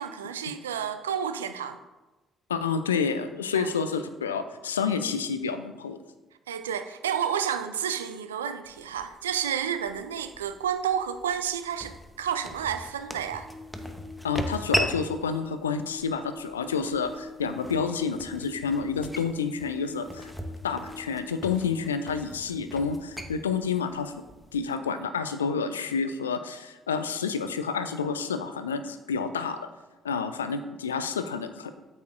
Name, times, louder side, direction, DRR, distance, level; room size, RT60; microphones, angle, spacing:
voice 1, 0.0-1.8 3.5-3.7 6.5-13.5, right 8 dB, 80° right, 9 dB, 0.4 m, -30 dB
voice 2, 2.5-6.0 14.2-20.3 20.6-24.1 24.5-29.7 30.0-31.7, left 5 dB, 85° left, 10 dB, 0.4 m, -29 dB
sound 1, 8.6-24.7, equal, ahead, 1.0 m, -38 dB
sound 2, 13.3-21.8, left 3 dB, 60° right, 1.9 m, -45 dB
8.6 x 8.1 x 2.5 m, 1.1 s
figure-of-eight pair, 45°, 0 cm